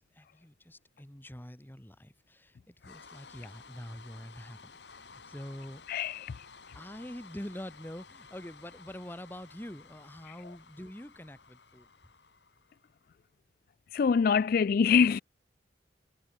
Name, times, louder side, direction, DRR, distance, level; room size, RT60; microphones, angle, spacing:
voice 1, 0.0-5.8 6.7-11.9, equal, 10° left, 1.6 m, -45 dB
sound 1, 2.8-13.1, left 5 dB, 70° left, 2.6 m, -54 dB
voice 2, 5.9-6.5 10.3-10.4 13.9-15.2, left 6 dB, 55° left, 0.3 m, -25 dB
head